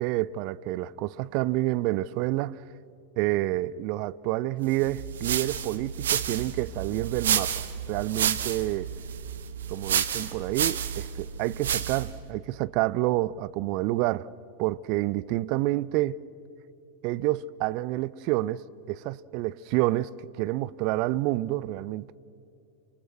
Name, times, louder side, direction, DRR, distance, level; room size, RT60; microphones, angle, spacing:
voice 1, 0.0-2.6 3.2-8.9 9.7-14.3 14.6-16.2 17.0-22.1, right 17 dB, 45° right, 0.5 m, -28 dB
sound 1, 4.8-12.2, right 9 dB, 60° right, 1.3 m, -30 dB
29.5 x 25.5 x 6.4 m
figure-of-eight pair, 90°, 0 cm